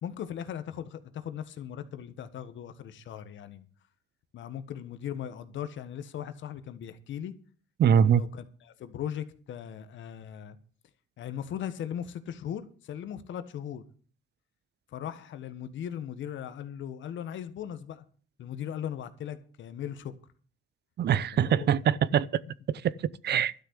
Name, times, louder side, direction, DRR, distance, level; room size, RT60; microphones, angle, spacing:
voice 1, 0.0-3.7 4.3-7.3 7.9-10.6 11.2-13.8 14.9-18.0 18.4-20.1 21.3-21.9, left 9 dB, 75° left, 1.5 m, -38 dB
voice 2, 7.8-8.2 21.0-22.4 22.7-23.5, right 8 dB, 55° right, 0.6 m, -24 dB
12.0 x 6.7 x 8.3 m
cardioid pair, 90°, 20 cm